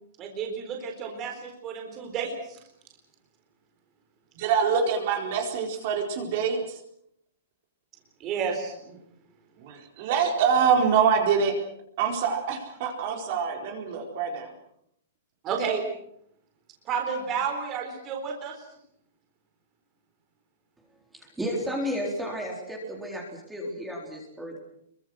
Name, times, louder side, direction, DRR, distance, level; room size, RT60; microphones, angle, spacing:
voice 1, 0.2-2.6 8.2-8.7 15.4-15.8 16.8-18.6, right 6 dB, 20° right, 3 dB, 4.0 m, -31 dB
voice 2, 4.4-6.8 9.6-11.6 12.0-14.5, right 6 dB, 40° right, 2 dB, 4.3 m, -25 dB
voice 3, 21.1-24.6, equal, 5° right, -1 dB, 4.0 m, -33 dB
27.0 x 23.5 x 6.3 m, 0.71 s
hypercardioid pair, 175°, 0 cm